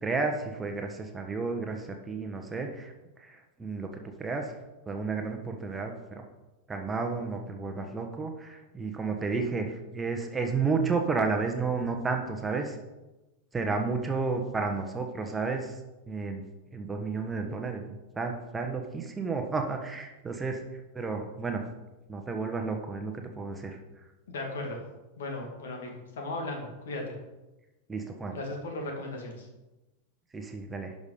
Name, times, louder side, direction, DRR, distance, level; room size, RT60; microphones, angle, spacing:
voice 1, 0.0-2.9 3.2-3.9 4.2-4.5 4.9-6.2 6.7-12.8 13.5-15.8 16.1-16.4 16.7-17.8 18.2-20.6 20.9-21.6 22.1-23.8 27.9-28.4 30.3-30.9, right 4 dB, 15° right, 3 dB, 1.2 m, -32 dB
voice 2, 24.3-24.8 25.2-27.1 28.3-29.5, left 2 dB, 60° left, 2 dB, 2.3 m, -36 dB
12.0 x 5.4 x 5.1 m, 1.0 s
figure-of-eight pair, 90°, 0 cm